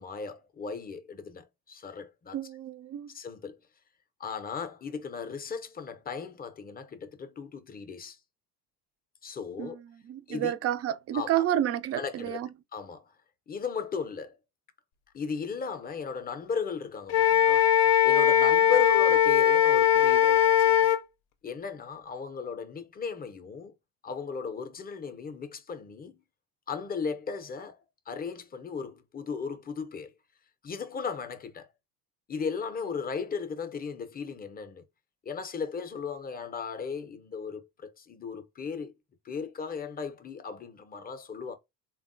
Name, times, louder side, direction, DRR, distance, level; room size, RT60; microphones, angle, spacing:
voice 1, 0.0-2.4 3.1-3.6 4.2-8.2 9.2-9.8 10.3-10.5 11.1-11.4 11.9-12.4 12.7-13.1 13.5-14.4 15.1-17.7 18.0-20.9 21.4-23.7 24.0-26.2 26.7-27.8 28.1-30.1 30.6-31.7 32.3-34.8 35.2-38.9 39.2-41.5, left 6 dB, 20° left, 0.5 m, -36 dB
voice 2, 2.3-3.1 9.6-12.5, right 11 dB, 35° right, 0.4 m, -30 dB
Wind instrument woodwind instrument, 17.1-21.0, left 10 dB, 70° left, 0.6 m, -20 dB
3.3 x 2.2 x 2.5 m
hypercardioid pair, 70°, 47 cm